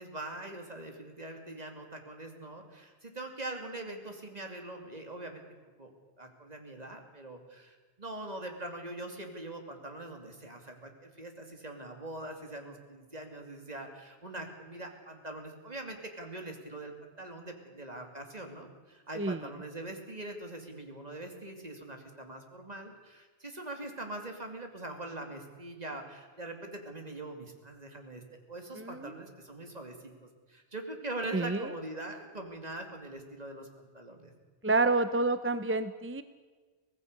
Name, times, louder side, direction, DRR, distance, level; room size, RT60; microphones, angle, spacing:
voice 1, 0.0-5.4 5.8-5.9 6.2-28.2 28.5-34.3, right 2 dB, 40° right, 4 dB, 2.8 m, -42 dB
voice 2, 28.8-29.1 31.3-31.7 34.6-36.2, right 3 dB, 15° right, 12 dB, 0.5 m, -28 dB
24.5 x 18.0 x 6.7 m, 1.4 s
omnidirectional pair, 1.1 m